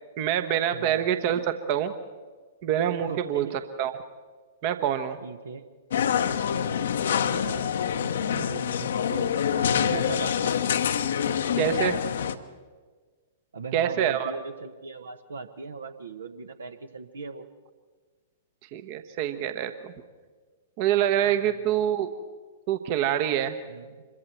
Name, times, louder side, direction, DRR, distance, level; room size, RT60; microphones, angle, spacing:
voice 1, 0.2-1.9 2.6-3.5 3.8-4.0 4.6-5.2 11.6-12.0 13.7-14.3 18.7-19.9 20.8-22.1 22.7-23.6, right 10 dB, 40° right, 10 dB, 1.1 m, -26 dB
voice 2, 0.7-1.0 3.1-3.6 5.2-5.7 7.0-10.4 13.5-17.5 21.2-21.7 23.7-24.1, right 5 dB, 70° right, 9 dB, 1.2 m, -39 dB
sound 1, 5.9-12.3, left 8 dB, 60° left, 0.9 m, -26 dB
26.0 x 22.5 x 4.5 m, 1.5 s
figure-of-eight pair, 105°, 0 cm